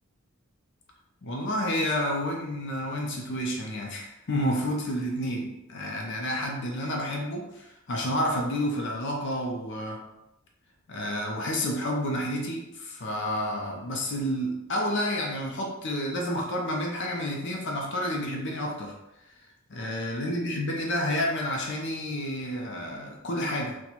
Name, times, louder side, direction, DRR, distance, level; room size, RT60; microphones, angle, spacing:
voice 1, 1.2-10.0 10.9-18.9 19.7-23.8, equal, 55° left, 0 dB, 0.6 m, -30 dB
4.2 x 2.2 x 2.9 m, 0.90 s
head